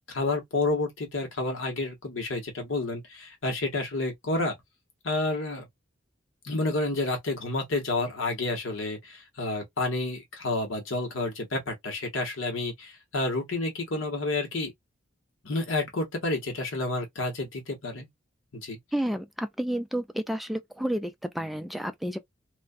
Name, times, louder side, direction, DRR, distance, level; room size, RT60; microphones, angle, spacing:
voice 1, 0.1-4.6 5.0-5.7 6.4-14.7 15.4-18.1 18.5-18.8, left 2 dB, 85° left, 1.1 m, -30 dB
voice 2, 18.9-22.2, equal, ahead, 0.3 m, -31 dB
2.4 x 2.2 x 2.4 m
head